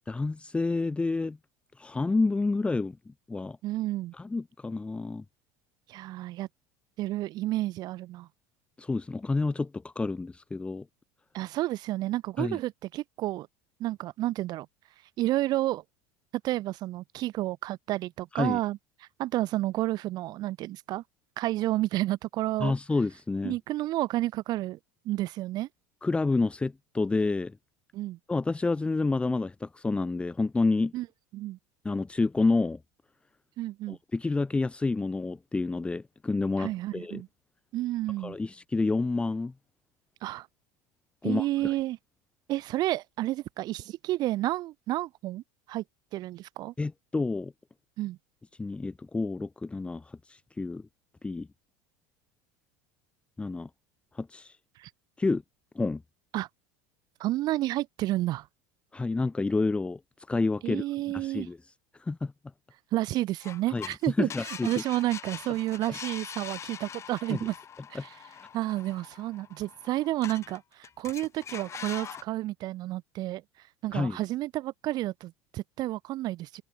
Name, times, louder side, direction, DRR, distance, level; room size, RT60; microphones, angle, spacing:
voice 1, 0.1-1.4 1.8-3.6 4.2-5.2 8.8-10.8 12.4-12.6 18.3-18.6 22.6-23.5 26.0-27.6 28.3-30.9 31.8-32.8 33.9-37.2 38.2-39.5 41.2-41.7 46.8-47.5 48.6-50.8 51.2-51.5 53.4-53.7 54.1-54.6 55.2-55.4 55.7-56.0 58.9-60.0 60.3-60.8 61.1-61.6 62.0-62.3 63.7-64.7 67.3-67.4 67.9-68.0 73.9-74.2, left 3 dB, 15° left, 1.4 m, -29 dB
voice 2, 3.6-4.1 5.9-6.5 7.0-8.3 11.3-13.5 13.8-14.7 15.2-15.8 16.4-18.8 19.2-21.0 21.4-22.7 23.4-24.8 25.0-25.7 27.9-28.2 30.9-31.1 31.3-31.6 33.6-34.0 36.6-37.3 37.7-38.4 40.2-40.5 41.2-42.0 42.5-45.4 45.7-45.8 46.1-46.7 48.0-48.2 54.8-54.9 56.3-56.5 57.2-58.5 60.6-61.5 62.9-64.3 64.6-67.5 67.9-68.1 68.5-73.4 73.8-76.6, right 16 dB, 55° right, 4.3 m, -30 dB
sound 1, 63.4-64.0 64.3-70.6 70.8-72.2, left 8 dB, 35° left, 3.2 m, -43 dB
supercardioid pair, 105°, 8 cm